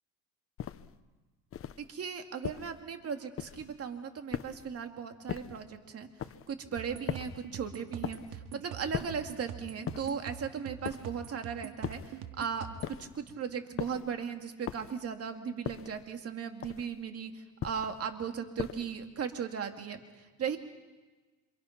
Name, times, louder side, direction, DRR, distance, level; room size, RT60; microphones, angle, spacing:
sound 1, 0.6-1.0 1.5-1.9 2.4-2.8 3.4-3.8 4.3-4.8 5.3-5.7 6.2-6.5 7.1-7.5 8.0-8.4 8.9-9.3 9.9-10.3 10.8-11.3 11.8-12.2 12.8-13.2 13.8-14.1 14.7-15.1 15.7-16.1 16.6-17.0 17.6-18.0 18.6-19.0, left 9 dB, 35° left, 1.0 m, -39 dB
voice 1, 1.9-6.1 6.5-20.6, right 6 dB, 40° right, 5 dB, 2.5 m, -37 dB
sound 2, 6.8-13.0, right 8 dB, 75° right, 2.5 m, -44 dB
28.5 x 27.0 x 6.0 m, 1.2 s
cardioid pair, 120°, 37 cm